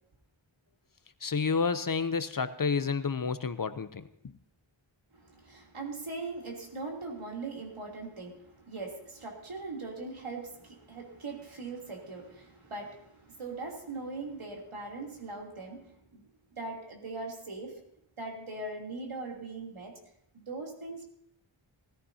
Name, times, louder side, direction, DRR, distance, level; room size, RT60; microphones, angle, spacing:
voice 1, 1.2-4.4, left 5 dB, 45° left, 11 dB, 0.7 m, -30 dB
voice 2, 5.1-17.8 18.2-20.0 20.3-21.0, right 3 dB, 80° right, -1 dB, 3.3 m, -40 dB
19.5 x 14.0 x 2.8 m, 0.72 s
wide cardioid pair, 85°, 49 cm